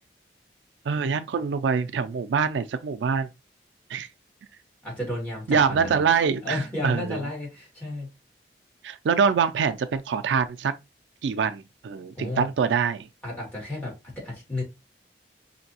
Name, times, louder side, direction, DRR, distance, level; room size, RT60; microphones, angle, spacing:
voice 1, 0.9-3.3 3.9-4.1 5.5-7.2 8.8-10.7 11.2-13.1, right 6 dB, 90° right, 0.4 m, -24 dB
voice 2, 4.8-6.0 6.4-8.1 12.2-12.5 13.2-14.6, left 1 dB, 10° left, 2.1 m, -32 dB
5.2 x 2.8 x 2.7 m
head